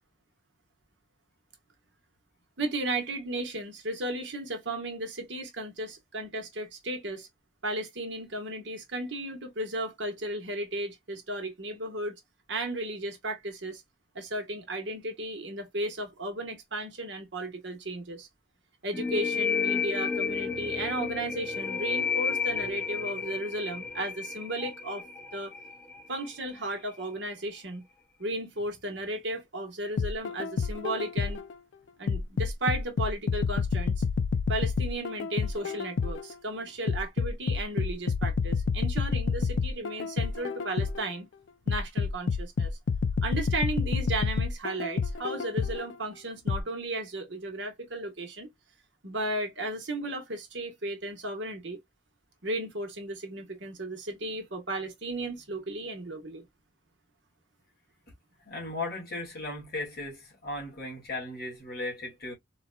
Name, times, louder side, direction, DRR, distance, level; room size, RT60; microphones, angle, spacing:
voice 1, 2.6-7.3 7.6-12.2 12.5-13.8 14.1-18.3 18.8-25.0 25.3-25.5 26.1-27.8 28.2-31.4 32.0-34.0 34.5-41.2 41.7-42.7 43.2-48.5 49.0-51.8 52.4-56.5, right 2 dB, 65° right, 1.3 m, -34 dB
sound 1, 18.9-26.4, left 6 dB, 10° left, 0.5 m, -31 dB
sound 2, 30.0-31.5 32.1-36.3 36.9-41.1 41.7-45.9 46.5-46.6, left 5 dB, 65° left, 0.4 m, -29 dB
voice 2, 58.5-62.3, left 2 dB, 50° left, 2.2 m, -36 dB
4.1 x 2.9 x 2.2 m
head